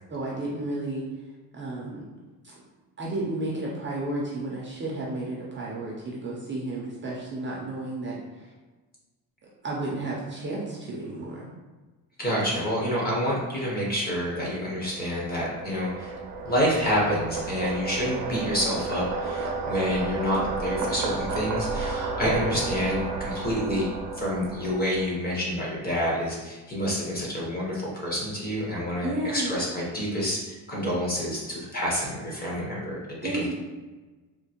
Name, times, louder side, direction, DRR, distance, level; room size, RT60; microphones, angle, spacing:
voice 1, 0.1-1.0 1.5-2.0 2.4-2.6 3.0-8.2 9.6-11.5 22.2-22.4 29.0-29.5 33.2-33.4, right 2 dB, 30° right, -5 dB, 0.5 m, -32 dB
voice 2, 12.2-16.1 16.4-23.9 24.2-33.0 33.3-33.5, equal, 25° left, -5 dB, 0.8 m, -28 dB
sound 1, 14.7-25.4, right 3 dB, 85° right, 0.6 m, -32 dB
3.6 x 2.5 x 2.8 m, 1.2 s
cardioid pair, 175°, 40 cm